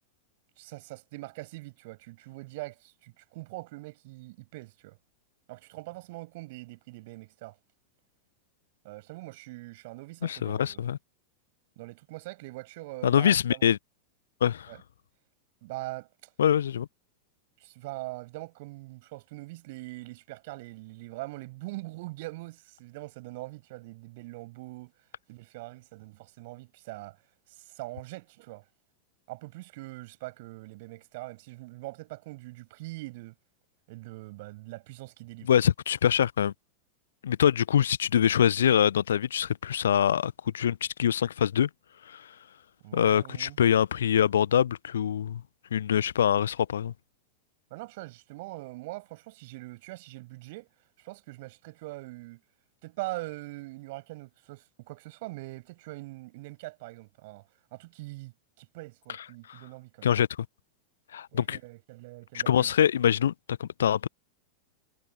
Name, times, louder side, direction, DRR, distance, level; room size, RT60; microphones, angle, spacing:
voice 1, 0.6-5.0 5.5-7.6 8.8-10.8 11.8-13.6 14.7-14.8 15.6-16.1 17.6-24.9 25.3-27.2 27.5-28.6 29.3-33.3 33.9-35.5 42.8-43.6 47.7-50.7 51.0-52.4 52.8-57.4 57.7-60.1 61.3-62.7, right 21 dB, 50° right, 7.5 m, -42 dB
voice 2, 10.2-11.0 13.0-13.8 14.4-14.7 16.4-16.9 35.5-36.5 37.2-41.7 42.1-42.2 42.9-45.4 45.7-46.9 59.5-59.6 60.0-60.3 61.1-61.6 62.3-64.1, left 9 dB, 65° left, 1.1 m, -24 dB
figure-of-eight pair, 90°, 0 cm